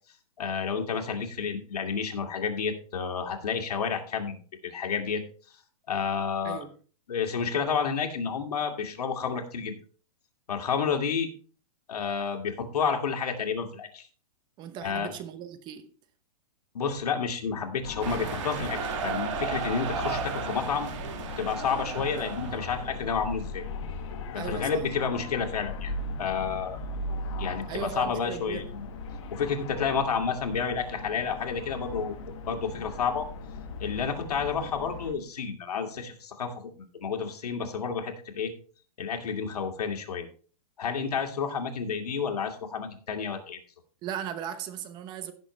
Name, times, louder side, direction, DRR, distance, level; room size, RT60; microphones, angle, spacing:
voice 1, 0.4-4.4 4.6-5.2 5.9-6.6 7.1-9.8 10.5-11.3 11.9-14.1 14.8-15.1 16.7-20.9 21.4-23.6 24.3-25.9 26.2-27.0 27.4-28.9 29.3-32.1 32.5-33.3 33.8-38.5 39.0-40.3 40.8-43.6, left 6 dB, 85° left, 2.5 m, -30 dB
voice 2, 14.6-15.9 24.3-24.9 27.7-28.7 44.0-45.3, right 9 dB, 25° right, 0.8 m, -37 dB
sound 1, 17.8-35.1, left 3 dB, 50° left, 1.7 m, -38 dB
sound 2, 18.0-23.1, right 6 dB, 55° right, 1.9 m, -34 dB
16.5 x 6.5 x 3.3 m
hypercardioid pair, 155°, 19 cm